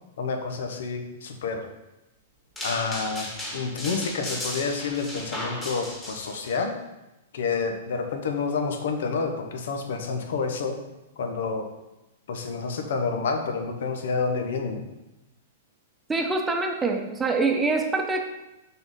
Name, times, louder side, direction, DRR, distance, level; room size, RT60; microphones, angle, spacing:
voice 1, 0.2-1.7 2.6-3.3 3.5-6.7 7.3-10.8 11.2-11.7 12.3-14.8, left 4 dB, 75° left, 5 dB, 0.9 m, -29 dB
sound 1, 2.6-6.5, left 1 dB, 10° left, 1.8 m, -35 dB
voice 2, 16.1-18.2, right 3 dB, 10° right, 2 dB, 0.9 m, -25 dB
6.0 x 3.8 x 5.4 m, 0.98 s
hypercardioid pair, 135°, 0 cm